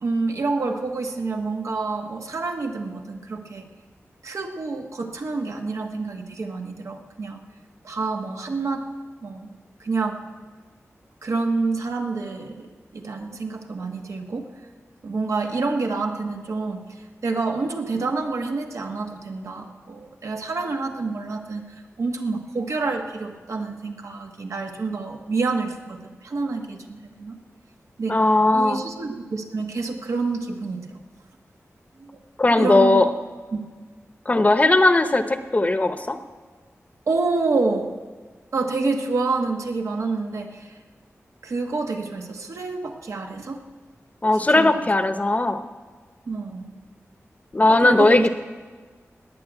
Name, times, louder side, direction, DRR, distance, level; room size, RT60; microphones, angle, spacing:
voice 1, 0.0-3.7 4.2-7.4 7.8-8.9 9.2-9.5 9.8-10.2 11.2-14.5 15.0-21.6 22.0-27.3 28.0-28.2 28.5-31.0 32.0-32.2 32.6-33.1 33.5-33.6 37.1-37.9 38.5-40.8 41.4-43.6 44.3-44.8 46.3-46.7 47.7-48.3, right 3 dB, 85° right, 3 dB, 1.5 m, -28 dB
voice 2, 28.1-28.8 32.4-33.1 34.3-36.2 44.2-45.6 47.5-48.3, left 2 dB, 30° left, 9 dB, 0.8 m, -18 dB
19.0 x 6.6 x 9.1 m, 1.4 s
wide cardioid pair, 110°, 5 cm